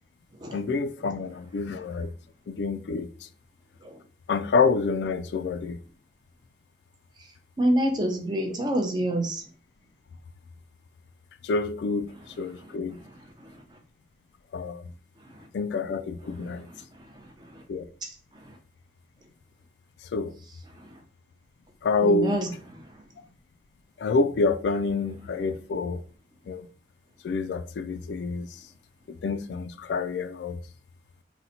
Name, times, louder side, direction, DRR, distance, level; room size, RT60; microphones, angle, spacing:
voice 1, 0.5-2.1 2.5-3.1 4.3-5.8 11.4-12.1 12.4-13.0 14.5-14.8 15.5-16.7 17.7-17.9 20.1-20.3 21.8-22.4 24.0-26.0 26.5-26.7 27.2-28.5 29.1-30.6, left 4 dB, 75° left, 0.3 m, -27 dB
voice 2, 7.2-9.5 12.1-13.8 15.2-15.5 16.2-17.6 18.0-18.6 20.5-21.0 22.0-23.1 25.3-25.5, right 1 dB, 25° right, 0.5 m, -31 dB
3.9 x 2.1 x 2.7 m
head